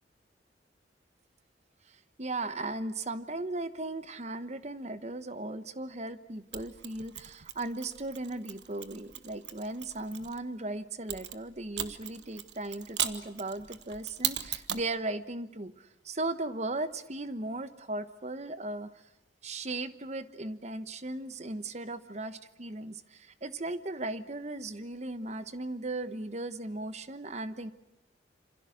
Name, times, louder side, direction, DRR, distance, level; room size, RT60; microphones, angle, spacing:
voice 1, 1.9-18.9 19.4-27.7, right 2 dB, 40° right, 12 dB, 1.2 m, -37 dB
Mechanisms, 6.5-10.4 11.1-14.9, right 11 dB, 75° right, 1.3 m, -38 dB
27.5 x 26.0 x 6.5 m, 0.85 s
head